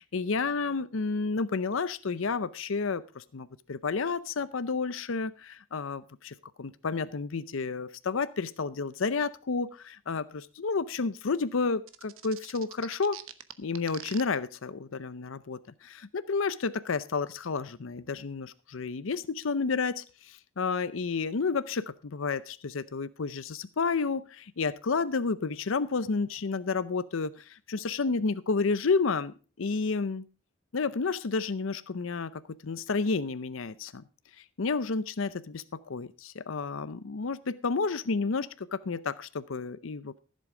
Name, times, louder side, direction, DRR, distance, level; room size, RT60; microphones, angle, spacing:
voice 1, 0.0-13.2 13.6-30.3 30.7-34.0 34.6-40.2, left 4 dB, 75° left, 15 dB, 0.6 m, -31 dB
sound 1, 11.9-14.2, right 11 dB, 90° right, 1.0 m, -43 dB
14.5 x 7.8 x 4.8 m, 0.35 s
head